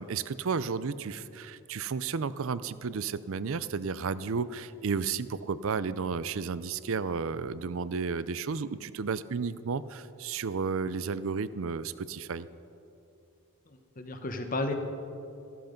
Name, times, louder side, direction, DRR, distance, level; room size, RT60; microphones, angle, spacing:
voice 1, 0.0-12.5, right 5 dB, 65° right, 16 dB, 0.5 m, -32 dB
voice 2, 13.7-14.7, left 2 dB, 35° left, 6 dB, 1.0 m, -33 dB
14.5 x 13.5 x 5.2 m, 2.7 s
head